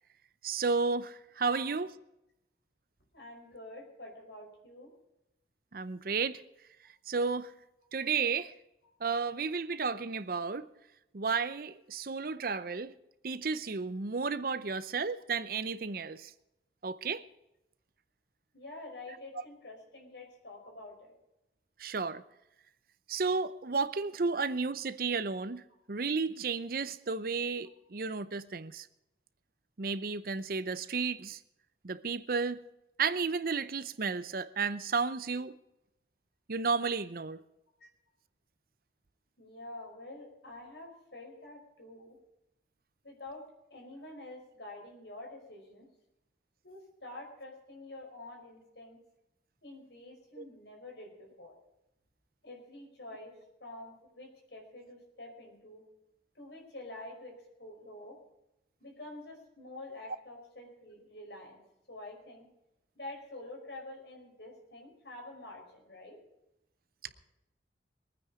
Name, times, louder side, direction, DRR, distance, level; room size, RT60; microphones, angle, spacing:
voice 1, 0.4-1.9 5.7-6.4 7.1-7.5 7.9-8.5 9.0-10.7 11.1-12.9 13.2-16.3 16.8-17.2 21.8-22.2 23.1-25.6 25.9-28.9 29.8-31.4 31.8-32.6 33.0-35.6 36.5-37.4 50.4-50.5 67.0-67.1, right 4 dB, 55° right, 0.7 m, -32 dB
voice 2, 1.4-1.8 3.1-4.9 18.5-21.1 37.8-37.9 39.4-42.2 43.0-43.4 43.7-45.9 46.6-49.0 49.6-51.5 52.4-53.3 53.6-55.8 56.4-58.2 58.8-61.6 61.9-62.5 63.0-66.2, left 2 dB, 75° left, 5.3 m, -47 dB
22.5 x 9.5 x 5.0 m
head